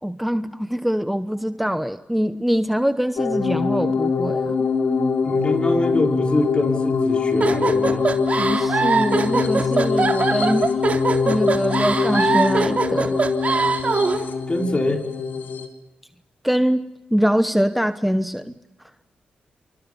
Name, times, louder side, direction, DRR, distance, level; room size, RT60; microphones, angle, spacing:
voice 1, 0.0-4.7 8.4-10.8 11.2-13.2 16.4-18.5, equal, ahead, 10 dB, 1.0 m, -23 dB
sound 1, 3.2-15.7, left 5 dB, 75° left, 3.9 m, -23 dB
voice 2, 5.2-8.1 14.5-15.1, left 2 dB, 35° left, 2 dB, 5.4 m, -23 dB
sound 2, 7.4-14.2, right 4 dB, 45° right, 3.5 m, -22 dB
28.5 x 28.0 x 5.6 m, 1.1 s
cardioid pair, 60°, 3 cm